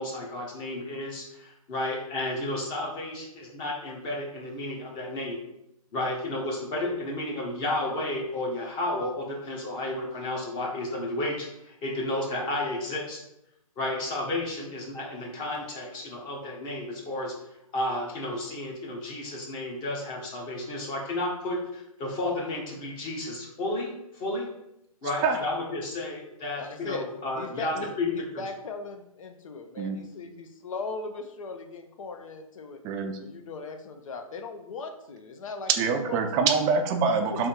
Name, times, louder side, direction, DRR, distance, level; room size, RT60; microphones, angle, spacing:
voice 1, 0.0-5.4 5.9-13.2 13.8-17.3 17.7-24.5 25.0-28.1, left 1 dB, 25° left, -1 dB, 1.1 m, -32 dB
voice 2, 26.6-27.1 27.3-32.8 33.2-36.2 37.2-37.5, left 4 dB, 60° left, 6 dB, 0.8 m, -39 dB
voice 3, 32.8-33.2 35.8-37.5, right 5 dB, 20° right, 5 dB, 0.5 m, -25 dB
3.5 x 3.4 x 4.4 m, 0.82 s
hypercardioid pair, 135°, 19 cm